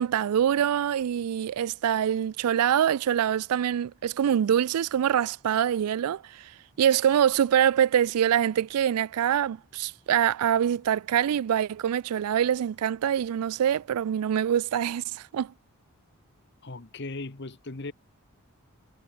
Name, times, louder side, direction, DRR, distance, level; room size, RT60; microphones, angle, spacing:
voice 1, 0.0-6.5 6.8-15.5, right 9 dB, 90° right, 0.3 m, -25 dB
voice 2, 16.6-17.9, left 2 dB, 50° left, 1.2 m, -37 dB
head